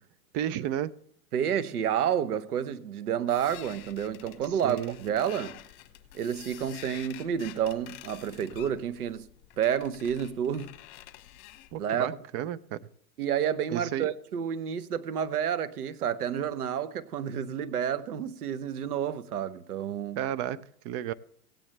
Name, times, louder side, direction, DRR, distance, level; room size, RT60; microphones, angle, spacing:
voice 1, 0.3-0.9 4.6-5.0 11.7-12.8 13.7-14.1 20.1-21.1, right 11 dB, 35° right, 0.6 m, -32 dB
voice 2, 1.3-5.6 6.1-9.3 9.6-10.7 11.8-12.2 13.2-20.2, right 9 dB, 85° right, 1.0 m, -30 dB
sound 1, 3.3-11.8, left 15 dB, 45° left, 1.4 m, -49 dB
17.0 x 9.0 x 3.2 m
hypercardioid pair, 115°, 44 cm